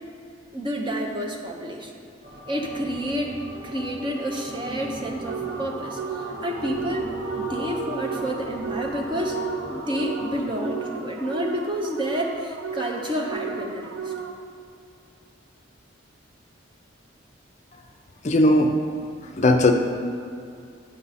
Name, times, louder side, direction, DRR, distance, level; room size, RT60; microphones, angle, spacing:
voice 1, 0.5-2.1 2.5-3.3 3.6-9.4 9.7-14.1, equal, 25° right, 0 dB, 0.7 m, -29 dB
sound 1, 2.2-10.4, right 1 dB, 50° right, 1.1 m, -37 dB
sound 2, 5.3-14.7, right 6 dB, 70° right, 0.4 m, -35 dB
voice 2, 18.2-18.7 19.2-19.7, left 1 dB, 35° left, 4 dB, 0.5 m, -18 dB
8.1 x 5.4 x 4.1 m, 2.5 s
head